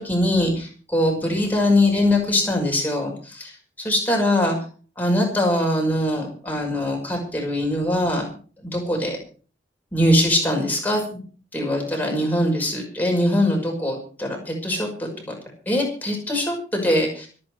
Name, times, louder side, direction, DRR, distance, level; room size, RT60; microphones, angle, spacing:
voice 1, 0.0-3.4 3.8-4.6 5.0-8.3 8.6-9.2 9.9-11.2 11.5-15.4 15.7-17.3, left 1 dB, 10° left, 0 dB, 5.9 m, -22 dB
25.5 x 9.1 x 4.8 m, 0.40 s
head